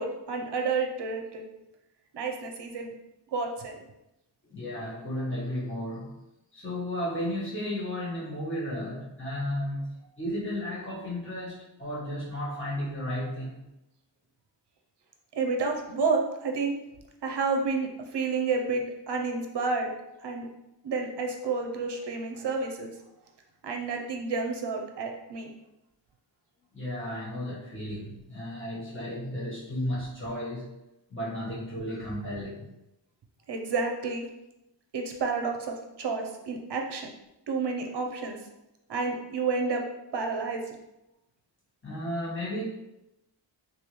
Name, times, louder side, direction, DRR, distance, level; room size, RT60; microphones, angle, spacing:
voice 1, 0.0-1.5 2.1-2.9 3.3-3.8 15.3-16.7 17.2-19.9 20.2-20.5 20.8-22.9 23.6-25.5 33.5-34.3 34.9-37.1 37.5-38.4 38.9-39.8 40.1-40.7, right 4 dB, 65° right, 3 dB, 0.7 m, -30 dB
voice 2, 4.5-6.2 6.5-13.7 20.2-20.3 26.7-30.7 31.1-32.7 41.8-42.6, left 1 dB, 25° left, -8 dB, 1.4 m, -34 dB
3.4 x 2.7 x 3.0 m, 0.90 s
wide cardioid pair, 80°, 46 cm